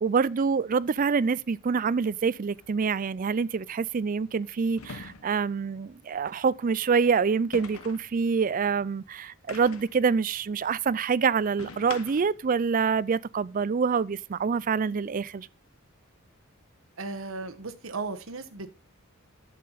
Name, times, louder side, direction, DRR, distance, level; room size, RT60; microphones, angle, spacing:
voice 1, 0.0-15.5, right 5 dB, 40° right, 0.4 m, -26 dB
sound 1, 2.6-2.7 4.8-5.5 7.5-8.1 9.5-10.0 11.6-12.4, left 4 dB, 90° left, 1.1 m, -42 dB
voice 2, 17.0-18.9, right 3 dB, 65° right, 1.3 m, -36 dB
11.0 x 7.6 x 4.1 m
head